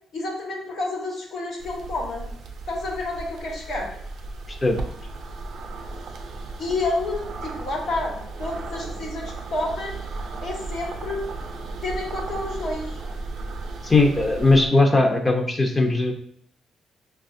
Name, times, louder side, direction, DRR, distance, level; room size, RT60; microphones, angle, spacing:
voice 1, 0.1-2.2 2.7-3.9 6.6-9.9 10.4-11.3 11.8-13.0, left 2 dB, 70° left, -1 dB, 1.2 m, -29 dB
sound 1, 1.6-14.7, right 3 dB, 65° right, 0.5 m, -35 dB
voice 2, 13.8-16.1, left 2 dB, 25° left, 3 dB, 0.6 m, -19 dB
5.5 x 2.3 x 2.6 m, 0.67 s
cardioid pair, 90°, 0 cm